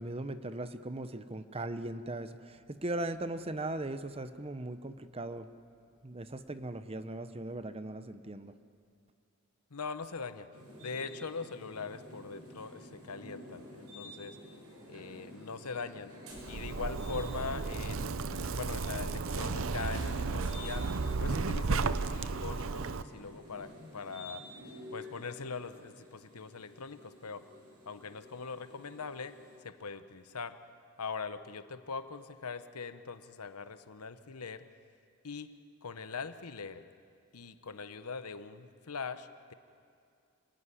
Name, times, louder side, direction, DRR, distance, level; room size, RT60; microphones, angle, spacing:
voice 1, 0.0-5.5 6.0-8.5, right 2 dB, 25° right, 11 dB, 0.8 m, -39 dB
voice 2, 9.7-10.5 10.8-14.4 14.9-16.1 16.5-20.9 21.2-24.4 24.9-27.5 27.9-29.4 29.6-30.6 31.0-34.6 35.2-35.5 35.8-36.9 37.3-39.5, left 5 dB, 85° left, 11 dB, 1.0 m, -42 dB
sound 1, 10.5-29.6, left 1 dB, 85° right, 6.3 m, -50 dB
Zipper (clothing), 16.4-23.0, right 4 dB, 60° right, 0.7 m, -34 dB
26.5 x 17.0 x 10.0 m, 2.4 s
head